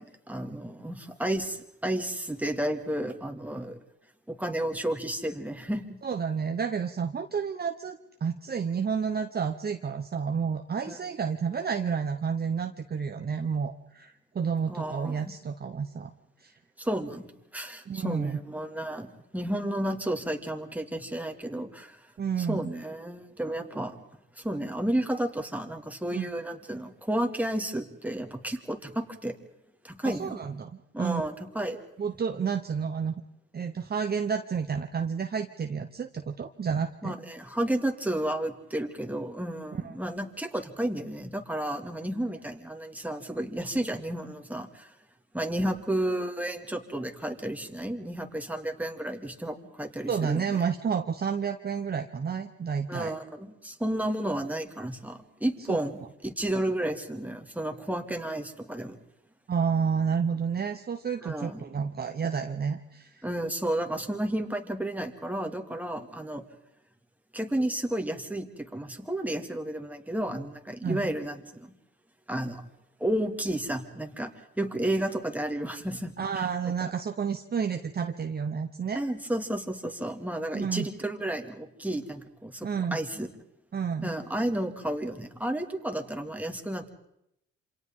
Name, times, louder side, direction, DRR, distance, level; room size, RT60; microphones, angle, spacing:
voice 1, 0.0-3.8 4.3-6.0 10.9-11.0 14.7-15.3 16.8-17.3 17.5-22.1 22.4-24.0 24.4-29.4 29.8-30.4 30.9-31.8 37.0-45.0 45.3-50.6 52.9-59.0 61.2-61.6 63.2-66.4 67.3-71.7 72.3-72.6 73.0-76.5 76.8-76.9 78.9-83.3 84.0-86.9, right 1 dB, 5° right, 4 dB, 2.2 m, -32 dB
voice 2, 6.0-16.1 16.4-16.5 17.9-18.4 22.2-22.7 26.1-26.3 30.0-31.2 32.0-33.2 33.5-37.2 39.7-39.9 50.1-53.1 55.7-55.8 59.5-63.3 70.8-71.1 76.2-79.0 80.5-80.9 82.6-83.0 83.7-84.1, right 6 dB, 30° right, 6 dB, 1.0 m, -30 dB
28.0 x 26.5 x 3.7 m, 0.80 s
cardioid pair, 90°, 30 cm